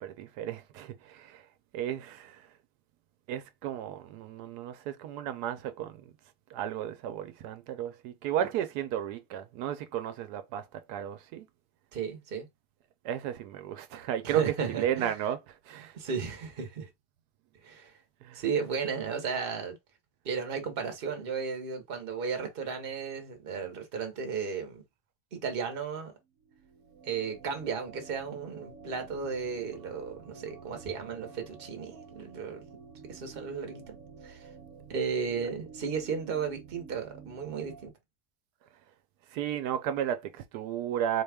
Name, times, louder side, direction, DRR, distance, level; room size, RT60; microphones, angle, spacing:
voice 1, 0.0-1.4 1.7-2.5 3.3-6.0 6.5-11.5 13.0-14.4 14.8-15.9 18.2-18.4 39.3-41.2, right 10 dB, 85° right, 1.1 m, -34 dB
voice 2, 11.9-12.5 14.2-15.2 15.9-16.9 17.6-17.9 18.3-19.8 20.2-24.8 25.3-26.1 27.0-32.6 33.1-33.9 34.2-34.5 34.9-37.9, right 6 dB, 40° right, 1.0 m, -34 dB
sound 1, 26.3-37.9, right 5 dB, 65° right, 0.9 m, -50 dB
4.1 x 2.3 x 3.3 m
omnidirectional pair, 1.7 m